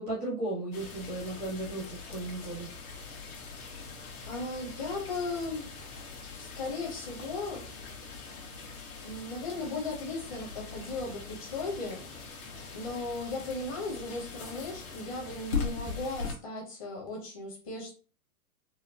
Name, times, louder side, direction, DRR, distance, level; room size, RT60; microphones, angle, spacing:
voice 1, 0.0-2.7, right 2 dB, 10° right, -5 dB, 0.4 m, -35 dB
sound 1, 0.7-16.3, left 5 dB, 75° left, 1.5 m, -41 dB
voice 2, 3.9-5.6 6.4-7.6 9.0-12.0 12.5-17.9, left 3 dB, 25° left, -2 dB, 0.8 m, -37 dB
4.3 x 2.2 x 2.7 m, 0.36 s
supercardioid pair, 180°, 45 cm